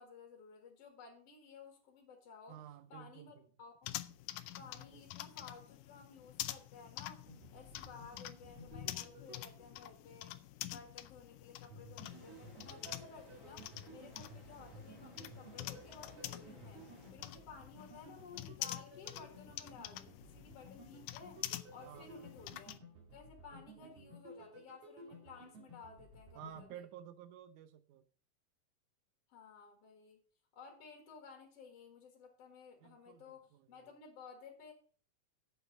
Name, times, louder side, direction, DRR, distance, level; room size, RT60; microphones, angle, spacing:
voice 1, 0.0-2.6 2.9-3.9 4.6-7.2 7.5-10.4 10.6-16.8 17.1-21.4 21.7-22.7 23.1-26.8 29.3-30.2 30.5-34.7, left 5 dB, 55° left, 2.6 m, -55 dB
voice 2, 2.5-3.5 4.6-5.3 17.3-17.5 21.8-22.4 23.5-24.1 25.1-25.2 26.3-28.0 32.8-33.9, right 10 dB, 90° right, 2.3 m, -54 dB
sound 1, 3.8-22.8, left 15 dB, 90° left, 2.1 m, -47 dB
sound 2, 7.2-10.2 11.7-26.8, right 1 dB, 70° right, 3.5 m, -56 dB
sound 3, 12.0-17.1, equal, 10° right, 2.9 m, -60 dB
7.9 x 6.5 x 6.3 m
omnidirectional pair, 3.4 m